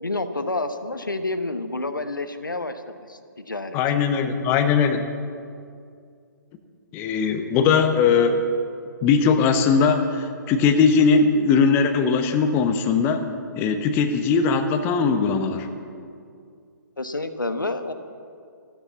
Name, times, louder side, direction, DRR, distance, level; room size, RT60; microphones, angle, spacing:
voice 1, 0.0-3.8 17.0-17.9, left 2 dB, 80° left, 9 dB, 1.1 m, -29 dB
voice 2, 3.7-5.1 6.9-8.4 9.0-13.3 13.6-15.7, left 5 dB, 20° left, 7 dB, 0.9 m, -20 dB
14.0 x 13.5 x 7.1 m, 2.3 s
figure-of-eight pair, 125°, 11 cm